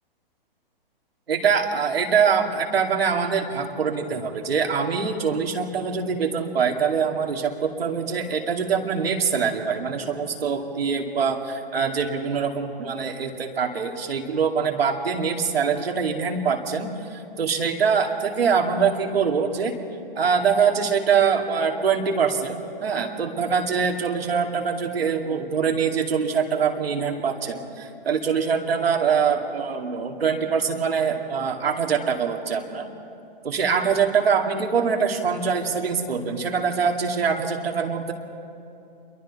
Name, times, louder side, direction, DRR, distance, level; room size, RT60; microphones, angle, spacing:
voice 1, 1.3-19.7 20.2-32.9 33.4-38.1, right 6 dB, 85° right, 2 dB, 2.5 m, -24 dB
28.5 x 22.5 x 4.2 m, 2.6 s
hypercardioid pair, 140°, 29 cm